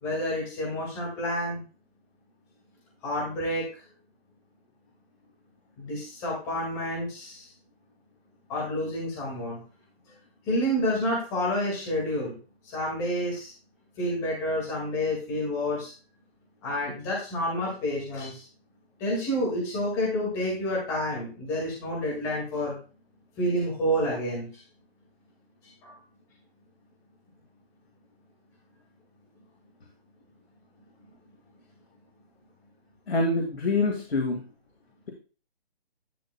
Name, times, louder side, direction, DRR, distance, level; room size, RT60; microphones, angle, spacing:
voice 1, 0.0-1.6 3.0-3.7 5.8-7.5 8.5-9.6 10.5-12.4 12.7-13.5 14.0-15.9 16.6-18.4 19.0-22.8 23.4-24.5 25.8-26.0, equal, 10° left, -4 dB, 1.9 m, -29 dB
voice 2, 33.1-34.4, left 2 dB, 85° left, 1 dB, 2.0 m, -25 dB
11.0 x 8.5 x 2.2 m, 0.36 s
hypercardioid pair, 175°, 31 cm